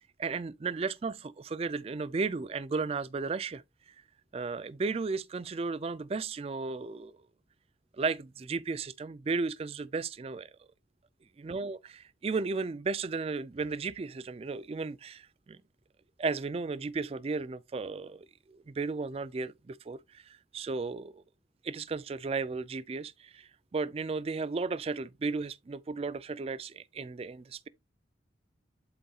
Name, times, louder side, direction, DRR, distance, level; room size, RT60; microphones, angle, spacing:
voice 1, 0.2-3.6 4.3-7.2 8.0-10.5 11.4-15.6 16.2-20.0 20.5-21.2 21.6-27.7, right 4 dB, 35° right, 0.3 m, -34 dB
11.0 x 4.1 x 2.3 m
head